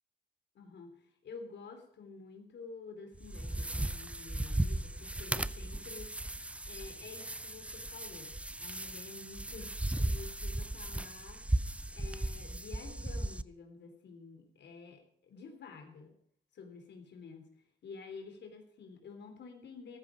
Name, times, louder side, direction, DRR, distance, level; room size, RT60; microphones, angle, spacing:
voice 1, 0.5-6.2 6.7-11.4 11.9-16.1 16.5-17.5 17.8-20.0, left 4 dB, 60° left, 5 dB, 3.4 m, -50 dB
sound 1, 3.1-13.4, right 1 dB, 5° right, 0.5 m, -36 dB
14.0 x 14.0 x 5.2 m, 0.65 s
cardioid pair, 90°, 20 cm